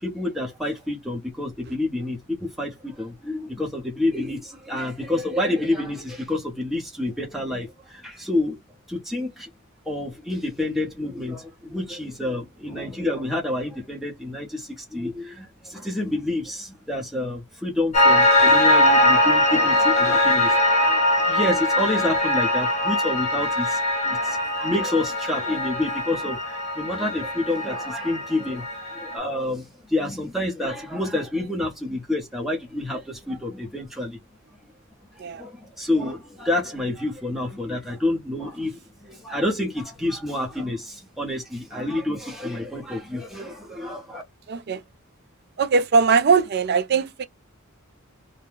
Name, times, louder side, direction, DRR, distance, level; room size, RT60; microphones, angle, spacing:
voice 1, 0.0-8.6 8.9-9.5 9.9-34.2 35.1-44.2, left 1 dB, ahead, 0.9 m, -28 dB
Piano, 17.9-29.2, left 1 dB, 30° left, 1.0 m, -21 dB
voice 2, 44.5-44.8 45.6-47.3, right 5 dB, 50° right, 0.4 m, -20 dB
2.8 x 2.2 x 3.3 m
head